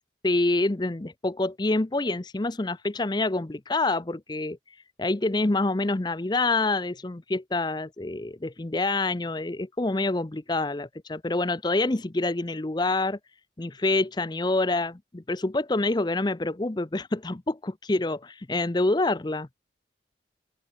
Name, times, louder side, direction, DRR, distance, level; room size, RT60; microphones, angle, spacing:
voice 1, 0.2-4.6 5.0-13.2 13.6-19.5, left 2 dB, 25° left, 0.6 m, -27 dB
open air
head